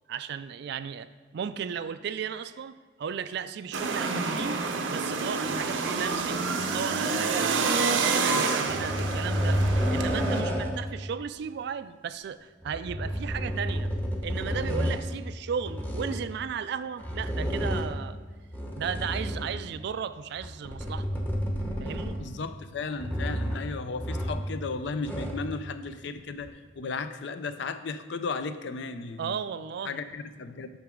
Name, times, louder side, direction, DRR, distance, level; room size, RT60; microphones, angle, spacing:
voice 1, 0.1-4.6 4.9-9.6 9.9-13.9 14.2-18.2 18.8-21.1 21.8-22.2 29.2-30.0, right 7 dB, 60° right, 13 dB, 0.3 m, -35 dB
sound 1, 3.7-10.4, right 4 dB, 80° right, 0.7 m, -28 dB
sound 2, 8.7-11.0 12.6-15.0 15.6-16.2 17.0-18.0 18.5-19.7 20.4-22.4 23.0-23.7 24.0-24.6 24.8-25.5 26.4-26.5, equal, 10° left, 0.8 m, -30 dB
voice 2, 22.2-29.3 29.9-30.7, left 4 dB, 65° left, 11 dB, 0.4 m, -35 dB
8.7 x 6.0 x 3.6 m, 1.5 s
head